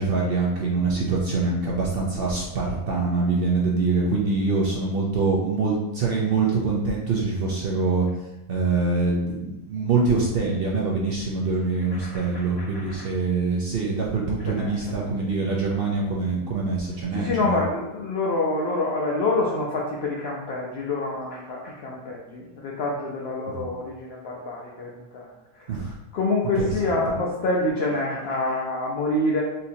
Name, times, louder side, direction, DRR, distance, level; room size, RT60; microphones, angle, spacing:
voice 1, 0.0-8.1 8.5-17.6 23.5-23.7 25.7-25.9 26.6-27.0, right 4 dB, 60° right, -3 dB, 0.6 m, -24 dB
voice 2, 11.9-13.1 14.5-15.1 15.4-15.5 17.1-25.3 25.6-25.7 26.1-29.4, left 2 dB, 60° left, -3 dB, 0.7 m, -27 dB
4.3 x 2.8 x 2.7 m, 0.98 s
omnidirectional pair, 1.6 m